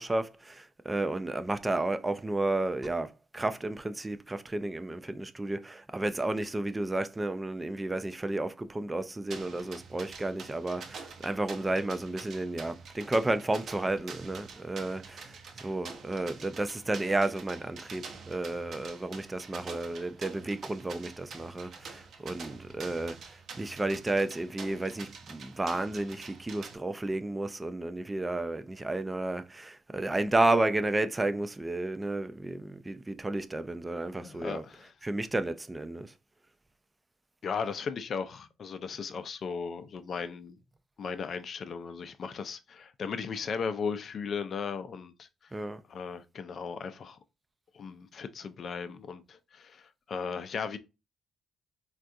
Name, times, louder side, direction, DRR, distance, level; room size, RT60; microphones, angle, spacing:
voice 1, 0.0-34.6 35.0-36.1 45.5-45.8, right 2 dB, 15° right, 0.3 m, -32 dB
sound 1, 9.3-26.8, right 5 dB, 60° right, 0.6 m, -46 dB
voice 2, 34.1-34.9 37.4-40.6 41.0-45.3 45.9-47.2 47.7-50.8, left 5 dB, 55° left, 0.4 m, -36 dB
3.6 x 2.3 x 2.6 m
cardioid pair, 90°, 0 cm